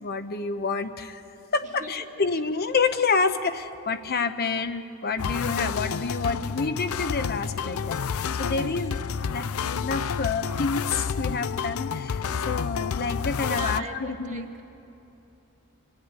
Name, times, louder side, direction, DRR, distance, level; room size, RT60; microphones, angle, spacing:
voice 1, 0.0-1.2 1.5-9.0 9.3-14.5, left 4 dB, 50° left, 9 dB, 0.8 m, -28 dB
sound 1, 5.2-13.8, left 6 dB, 75° left, 0.5 m, -30 dB
voice 2, 8.3-8.9 12.3-12.5 13.5-14.6, right 2 dB, 35° right, 5 dB, 1.7 m, -39 dB
24.5 x 15.5 x 9.9 m, 2.9 s
head